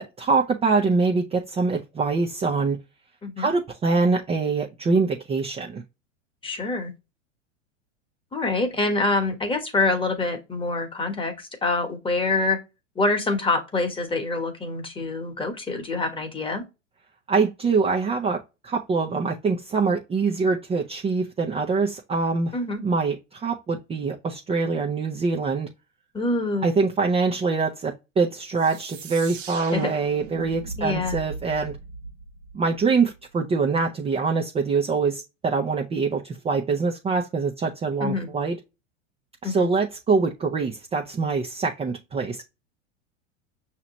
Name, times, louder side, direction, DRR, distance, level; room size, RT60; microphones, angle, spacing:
voice 1, 0.0-2.8 3.4-5.8 17.3-22.5 22.8-25.7 26.6-31.8 32.5-38.6 39.4-42.4, right 4 dB, 15° right, 0.6 m, -24 dB
voice 2, 6.4-6.9 8.3-12.6 13.0-16.6 22.5-22.8 26.1-26.7 29.7-29.9 30.8-31.1 38.0-38.3 39.4-39.7, left 3 dB, 15° left, 1.2 m, -26 dB
sound 1, 28.6-33.1, right 4 dB, 80° right, 1.3 m, -38 dB
5.8 x 2.9 x 2.9 m
hypercardioid pair, 105°, 37 cm